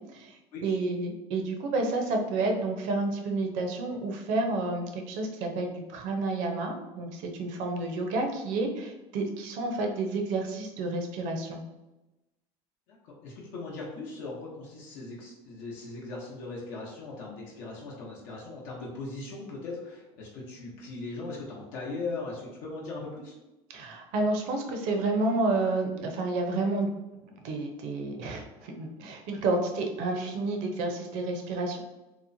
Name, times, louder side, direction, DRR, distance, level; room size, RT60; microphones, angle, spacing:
voice 1, 0.0-11.6 23.7-26.9 27.4-31.8, right 2 dB, 65° right, 3 dB, 0.6 m, -30 dB
voice 2, 12.9-23.3, left 3 dB, 70° left, -4 dB, 0.8 m, -39 dB
2.9 x 2.1 x 2.6 m, 1.0 s
cardioid pair, 130°, 14 cm